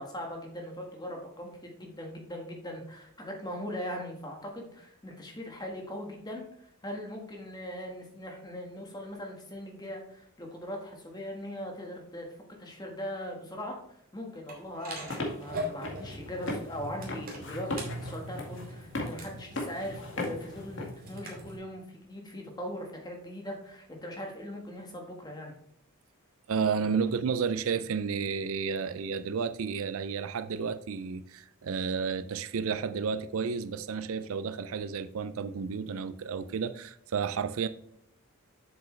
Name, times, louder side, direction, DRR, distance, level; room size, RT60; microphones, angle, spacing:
voice 1, 0.0-6.4 6.8-12.2 12.6-25.6, equal, 20° left, 1.6 m, -40 dB
sound 1, 14.5-21.6, equal, 40° right, 2.4 m, -41 dB
sound 2, 14.9-20.9, left 2 dB, 55° left, 2.0 m, -38 dB
voice 2, 26.5-37.7, right 6 dB, 70° right, 0.4 m, -31 dB
7.8 x 7.0 x 3.3 m
head